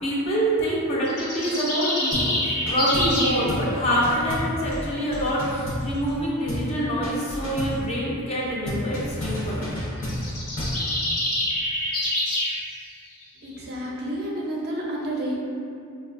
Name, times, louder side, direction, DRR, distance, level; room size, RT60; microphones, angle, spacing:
voice 1, 0.0-9.7, equal, 30° left, -6 dB, 0.5 m, -26 dB
sound 1, 1.1-3.4 10.0-12.5, left 1 dB, 85° left, 0.8 m, -26 dB
sound 2, 2.1-2.4 2.7-3.2 3.5-3.7 4.0-6.2 6.5-6.7 7.0-7.8 8.7-10.8, equal, 60° left, 0.8 m, -31 dB
voice 2, 13.4-15.4, right 1 dB, 45° right, -3 dB, 0.5 m, -30 dB
4.1 x 2.3 x 2.4 m, 2.5 s
head